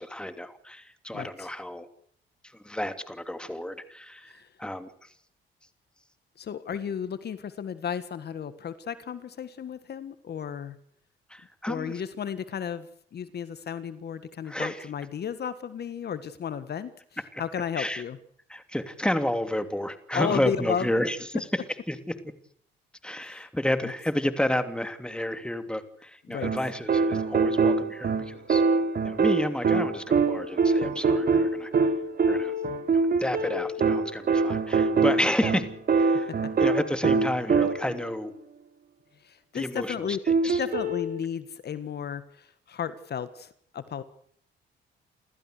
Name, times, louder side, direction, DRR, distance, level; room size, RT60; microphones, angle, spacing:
voice 1, 0.0-1.9 2.6-4.3 4.6-4.9 11.3-12.0 14.5-14.9 17.3-17.4 17.8-18.0 18.5-21.6 21.9-22.1 23.0-28.6 29.0-31.7 32.3-32.5 32.9-36.3 36.6-38.3 39.5-40.6, left 1 dB, 5° left, 9 dB, 2.9 m, -31 dB
voice 2, 1.1-1.5 4.3-4.5 6.4-10.8 11.7-12.9 13.1-16.9 17.4-18.2 20.1-21.0 23.2-23.5 26.3-26.5 39.2-44.0, left 8 dB, 55° left, 13 dB, 1.7 m, -33 dB
sound 1, 26.4-38.0 40.3-41.1, right 4 dB, 50° right, 2.8 m, -24 dB
29.0 x 14.5 x 6.7 m, 0.65 s
cardioid pair, 90°, 20 cm